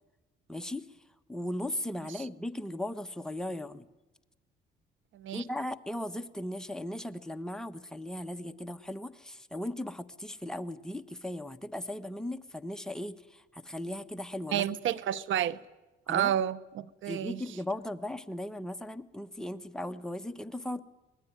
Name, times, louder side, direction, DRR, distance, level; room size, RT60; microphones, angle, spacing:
voice 1, 0.5-0.9 1.3-3.9 5.3-14.6 16.1-16.3 17.1-20.8, left 1 dB, 5° left, 1.2 m, -37 dB
voice 2, 5.1-5.4 14.5-15.6 16.1-17.4, right 11 dB, 75° right, 0.9 m, -30 dB
25.0 x 20.0 x 9.5 m
cardioid pair, 90°, 20 cm